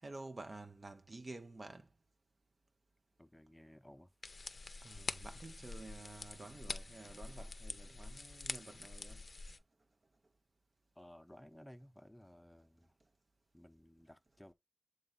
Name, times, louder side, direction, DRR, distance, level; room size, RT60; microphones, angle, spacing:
voice 1, 0.0-1.9 4.8-9.2, right 2 dB, 55° right, 0.7 m, -51 dB
voice 2, 3.2-4.2 11.0-13.0 13.5-14.5, left 1 dB, 10° left, 0.7 m, -58 dB
sound 1, 4.2-9.6, left 3 dB, 60° left, 0.5 m, -46 dB
7.8 x 3.1 x 3.9 m
wide cardioid pair, 55°, 0 cm